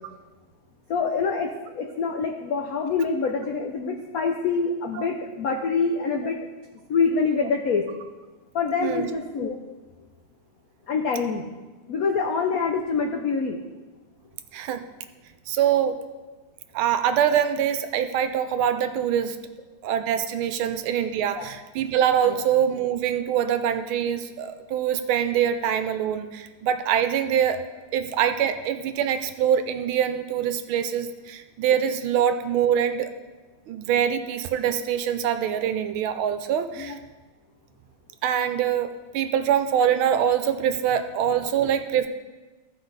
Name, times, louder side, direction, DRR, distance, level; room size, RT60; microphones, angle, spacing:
voice 1, 0.9-6.4 6.9-7.9 8.5-9.5 10.9-11.4 11.9-13.6 21.3-21.4 22.2-22.4 36.8-37.0, left 5 dB, 90° left, 3 dB, 0.7 m, -25 dB
voice 2, 15.5-16.0 16.7-19.4 19.8-27.6 27.9-33.1 33.7-37.0 38.2-38.9 39.1-42.1, right 9 dB, 75° right, 9 dB, 1.4 m, -24 dB
15.0 x 5.1 x 4.0 m, 1.2 s
omnidirectional pair, 2.4 m